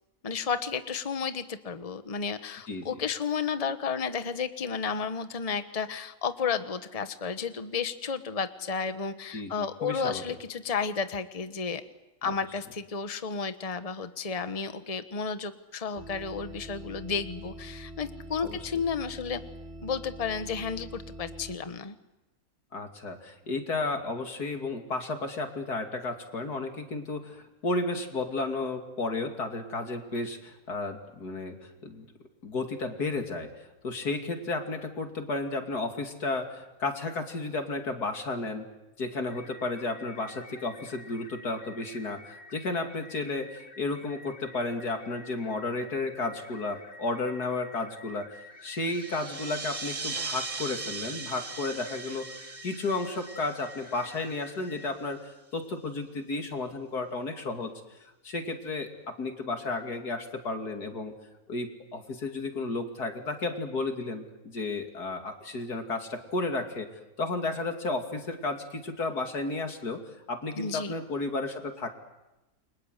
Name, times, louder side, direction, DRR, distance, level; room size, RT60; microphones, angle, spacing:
voice 1, 0.2-11.8 12.2-19.4 19.8-22.0 70.6-70.9, left 5 dB, 25° left, 10 dB, 1.2 m, -32 dB
voice 2, 9.3-10.2 12.2-12.3 18.4-18.6 22.7-32.1 32.4-38.7 39.0-48.3 48.6-61.1 61.5-66.9 67.2-70.0 70.3-71.9, left 3 dB, 90° left, 5 dB, 3.2 m, -33 dB
sound 1, 15.9-21.6, right 1 dB, 5° right, 3.3 m, -44 dB
sound 2, 39.3-54.9, left 2 dB, 40° left, 4.2 m, -50 dB
sound 3, 48.7-54.8, right 4 dB, 40° right, 2.2 m, -39 dB
29.5 x 24.5 x 8.1 m, 0.98 s
omnidirectional pair, 1.6 m